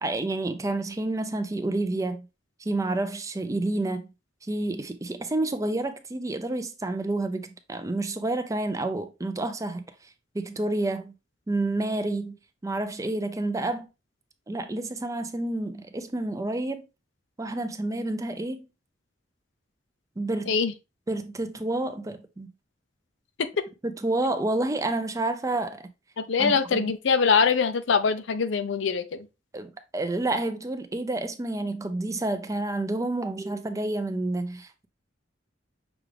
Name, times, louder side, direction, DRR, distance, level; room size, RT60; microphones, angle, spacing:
voice 1, 0.0-2.3 2.6-4.1 4.4-9.8 10.3-11.1 11.5-12.4 12.6-13.9 14.5-16.9 17.4-18.6 20.2-20.6 21.1-22.5 23.8-25.9 26.4-26.9 29.5-34.9, right 2 dB, 20° right, 0.4 m, -29 dB
voice 2, 26.2-29.2, left 5 dB, 75° left, 0.5 m, -23 dB
6.0 x 2.5 x 3.3 m
head